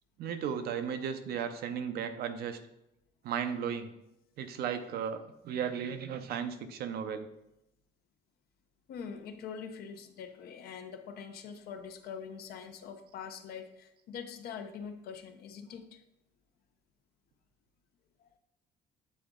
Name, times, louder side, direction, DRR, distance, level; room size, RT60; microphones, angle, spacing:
voice 1, 0.2-2.6 3.2-3.9 4.4-7.3, right 7 dB, 70° right, 9 dB, 0.7 m, -35 dB
voice 2, 8.9-16.0 18.2-18.3, left 6 dB, 65° left, 7 dB, 0.8 m, -44 dB
8.5 x 3.8 x 3.7 m, 0.84 s
cardioid pair, 110°, 17 cm